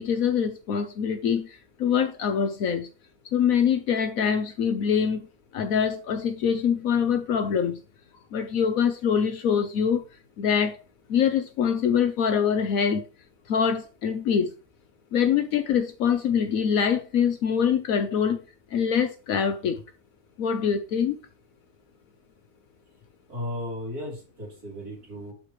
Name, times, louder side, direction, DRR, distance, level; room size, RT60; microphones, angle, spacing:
voice 1, 0.0-2.9 3.3-5.3 5.5-7.8 8.3-10.0 10.4-10.8 11.1-13.0 13.5-14.5 15.1-18.4 18.7-19.8 20.4-21.2, left 7 dB, 70° left, 1.1 m, -24 dB
voice 2, 23.3-25.3, left 1 dB, 90° right, 3.7 m, -35 dB
11.5 x 4.7 x 3.1 m
omnidirectional pair, 1.6 m